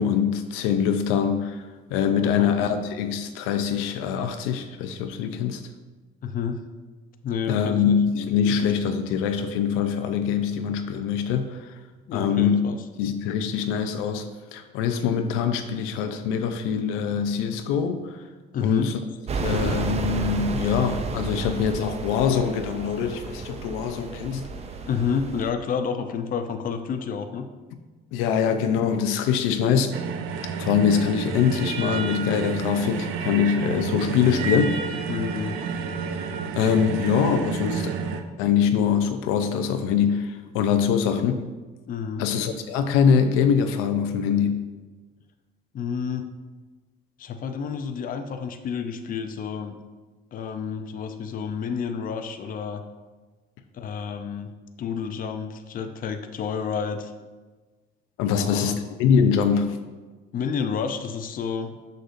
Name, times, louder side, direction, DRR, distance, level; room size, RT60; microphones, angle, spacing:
voice 1, 0.0-1.6 1.9-5.6 7.5-11.7 12.1-12.6 13.0-14.3 14.5-18.2 18.6-19.0 19.4-24.5 28.1-30.0 30.6-34.8 36.5-38.0 38.4-41.5 42.2-44.6 58.2-58.7 59.0-59.8, left 7 dB, 90° left, 7 dB, 0.5 m, -23 dB
voice 2, 2.2-2.5 6.2-6.6 7.2-8.0 12.1-12.8 18.5-18.9 24.9-27.5 35.1-35.6 41.9-42.2 45.7-46.3 47.2-49.8 50.3-52.8 53.7-54.5 54.8-57.1 58.3-58.8 60.3-61.8, left 6 dB, 45° left, 7 dB, 0.6 m, -30 dB
sound 1, 19.3-25.5, right 4 dB, 30° right, 0.5 m, -31 dB
sound 2, 29.9-38.2, right 5 dB, 75° right, 0.6 m, -30 dB
6.6 x 6.4 x 2.6 m, 1.3 s
cardioid pair, 110°, 21 cm